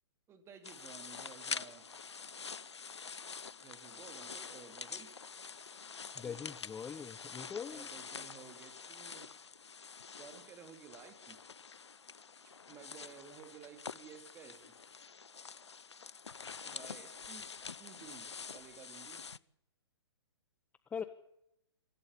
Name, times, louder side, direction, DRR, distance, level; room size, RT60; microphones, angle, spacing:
voice 1, 0.3-2.0 3.6-5.2 6.2-6.6 7.7-9.4 10.2-11.4 12.4-14.8 16.6-19.3, right 7 dB, 20° right, 2.7 m, -55 dB
sound 1, 0.6-19.4, left 5 dB, 80° left, 0.8 m, -47 dB
voice 2, 6.2-7.9 20.9-21.0, left 7 dB, 10° left, 0.8 m, -42 dB
24.5 x 15.5 x 8.6 m
figure-of-eight pair, 130°, 14 cm